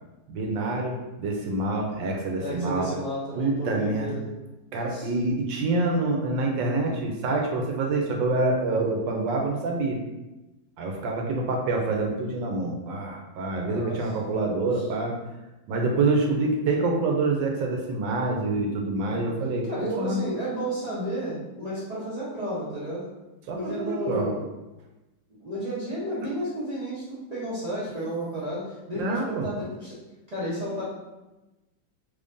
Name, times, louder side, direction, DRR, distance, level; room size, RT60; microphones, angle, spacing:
voice 1, 0.3-2.9 3.3-4.2 4.7-10.0 10.8-15.1 15.7-20.2 23.5-24.3 28.9-29.5, right 3 dB, 75° right, 1 dB, 1.3 m, -26 dB
voice 2, 2.4-4.2 4.9-5.1 13.6-14.0 19.1-19.3 19.7-23.0 23.5-24.4 25.4-30.0 30.3-30.8, right 1 dB, 45° right, -9 dB, 0.5 m, -32 dB
3.2 x 2.6 x 3.5 m, 1.0 s
omnidirectional pair, 2.1 m